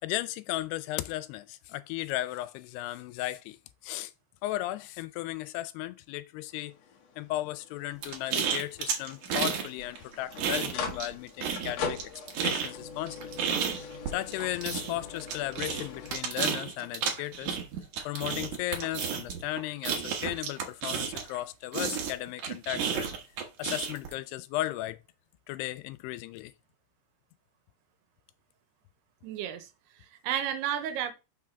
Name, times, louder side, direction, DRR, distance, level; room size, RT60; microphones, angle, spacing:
voice 1, 0.0-3.6 3.8-4.1 4.4-6.7 7.2-12.1 12.4-13.3 14.1-17.6 18.1-23.1 23.6-25.0 25.5-26.5, left 16 dB, 85° left, 2.6 m, -35 dB
sound 1, 6.5-16.2, left 5 dB, 70° left, 1.6 m, -42 dB
sound 2, 8.0-9.7 10.0-11.1 11.4-21.4 21.7-24.1, right 7 dB, 60° right, 2.2 m, -32 dB
voice 2, 29.2-29.7 30.0-31.1, right 10 dB, 85° right, 2.9 m, -32 dB
6.1 x 3.7 x 5.6 m
omnidirectional pair, 4.6 m